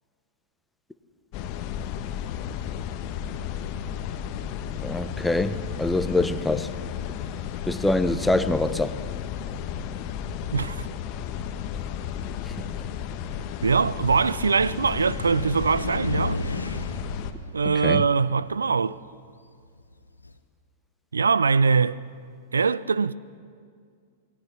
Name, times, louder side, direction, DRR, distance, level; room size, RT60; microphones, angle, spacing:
sound 1, 1.3-17.3, left 9 dB, 45° left, 1.4 m, -33 dB
voice 1, 4.8-6.7 7.7-8.9 17.6-18.0, left 2 dB, 5° left, 1.0 m, -24 dB
voice 2, 10.5-10.9 13.6-16.4 17.5-19.0 21.1-22.0 22.5-23.1, right 5 dB, 80° right, 0.5 m, -22 dB
Car, 12.2-20.4, left 2 dB, 90° left, 1.0 m, -36 dB
27.5 x 19.5 x 6.1 m
figure-of-eight pair, 100°, 0 cm